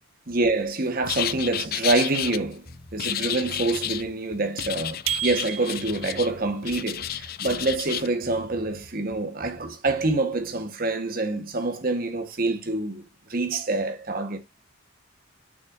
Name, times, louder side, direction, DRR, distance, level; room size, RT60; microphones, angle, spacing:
voice 1, 0.3-2.6 2.9-13.0 13.3-14.4, right 2 dB, 45° right, 1.4 m, -26 dB
sound 1, 1.0-10.6, left 1 dB, 15° right, 2.6 m, -47 dB
sound 2, 1.1-2.4 3.0-4.1 4.6-6.3 6.6-8.1, left 11 dB, 45° left, 0.4 m, -31 dB
sound 3, 5.1-6.2, right 12 dB, 70° right, 0.5 m, -30 dB
9.2 x 6.4 x 2.6 m
head